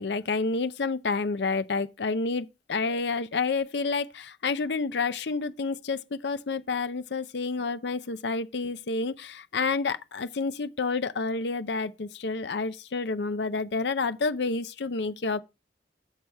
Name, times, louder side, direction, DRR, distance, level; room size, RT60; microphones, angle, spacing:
voice 1, 0.0-15.4, left 4 dB, 75° left, 0.6 m, -29 dB
9.7 x 6.3 x 3.4 m
head